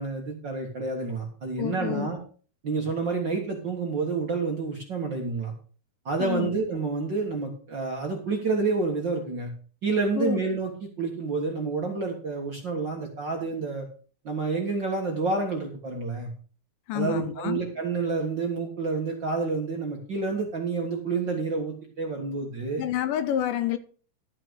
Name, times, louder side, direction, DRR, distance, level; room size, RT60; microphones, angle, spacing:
voice 1, 0.0-2.2 2.6-5.5 6.0-9.5 9.8-13.8 14.2-16.3 16.9-22.8, right 4 dB, 50° right, 1.4 m, -29 dB
voice 2, 1.6-2.1 6.2-6.5 10.2-10.4 16.9-17.6 22.8-23.8, left 11 dB, 75° left, 2.2 m, -28 dB
12.5 x 6.0 x 6.3 m
omnidirectional pair, 4.2 m